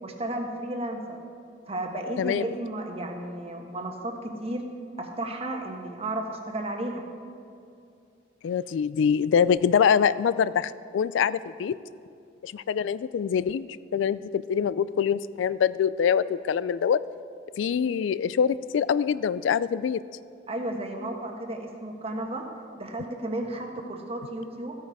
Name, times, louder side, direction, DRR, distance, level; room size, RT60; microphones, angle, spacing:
voice 1, 0.0-1.2 1.7-4.6 5.0-7.0 20.5-22.4 22.8-24.7, right 1 dB, 35° right, 3 dB, 1.2 m, -33 dB
voice 2, 8.4-11.8 12.4-17.0 17.6-20.0, left 7 dB, 80° left, 17 dB, 0.3 m, -24 dB
14.0 x 9.2 x 4.8 m, 2.5 s
head